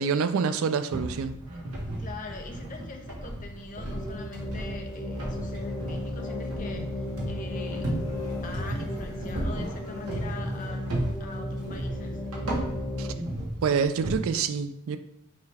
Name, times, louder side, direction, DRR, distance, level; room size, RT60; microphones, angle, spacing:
voice 1, 0.0-1.4 13.0-13.1 13.6-15.0, right 6 dB, 65° right, 11 dB, 0.3 m, -26 dB
sound 1, 0.9-14.2, right 1 dB, 85° right, 1.0 m, -35 dB
voice 2, 2.0-7.9 8.4-10.9 11.2-12.2, left 3 dB, 35° left, 4 dB, 0.5 m, -43 dB
sound 2, 3.9-13.1, left 1 dB, 15° left, 1.0 m, -35 dB
sound 3, 5.1-10.8, left 1 dB, 70° left, 0.9 m, -48 dB
5.6 x 2.3 x 3.3 m, 0.79 s
head